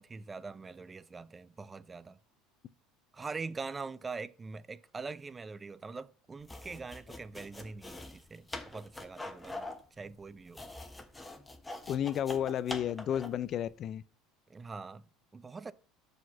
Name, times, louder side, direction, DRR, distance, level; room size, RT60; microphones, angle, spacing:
voice 1, 0.0-2.2 3.1-9.7 10.0-10.6 14.5-15.7, right 4 dB, 20° right, 0.4 m, -43 dB
sound 1, 6.4-13.5, left 2 dB, 10° left, 1.0 m, -44 dB
voice 2, 11.9-14.0, left 10 dB, 45° left, 0.3 m, -32 dB
5.9 x 5.0 x 5.7 m
supercardioid pair, 120°, 0 cm